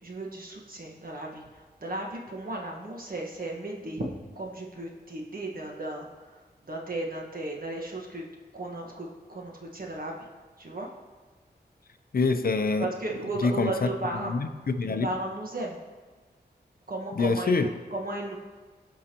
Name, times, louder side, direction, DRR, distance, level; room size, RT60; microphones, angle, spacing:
voice 1, 0.0-4.1 4.3-8.2 8.5-10.2 10.6-10.9 12.8-14.4 14.8-15.8 16.9-18.4, right 2 dB, 55° right, 0 dB, 1.5 m, -35 dB
voice 2, 12.1-12.9 13.4-13.7 14.3-15.1 17.2-17.7, left 4 dB, 55° left, 9 dB, 0.6 m, -25 dB
16.0 x 5.4 x 3.0 m, 1.4 s
wide cardioid pair, 65°, 18 cm